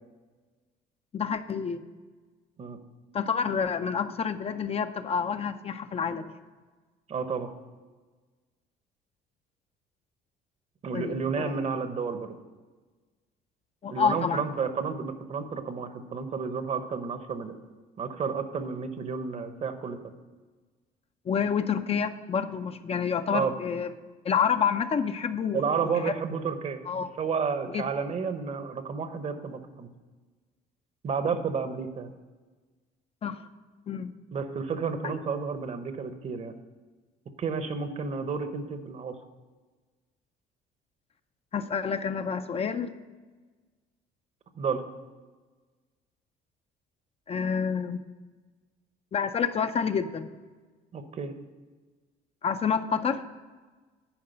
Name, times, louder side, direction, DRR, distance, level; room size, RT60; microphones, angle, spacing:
voice 1, 1.1-1.8 3.1-6.3 10.9-11.5 13.8-14.5 21.3-23.9 24.2-25.8 26.0-26.1 26.9-27.1 27.7-27.8 33.2-33.4 33.9-34.1 35.0-35.1 41.5-42.9 47.3-48.0 49.1-50.3 52.4-53.2, left 6 dB, 35° left, 9 dB, 0.5 m, -28 dB
voice 2, 7.1-7.5 10.8-12.3 13.9-17.5 18.0-20.0 23.3-23.6 25.5-26.8 27.2-29.9 31.0-32.1 34.3-36.5 37.4-39.2 44.6-44.8 50.9-51.3, right 5 dB, 40° right, 9 dB, 0.9 m, -31 dB
10.5 x 4.7 x 7.9 m, 1.3 s
cardioid pair, 110°, 17 cm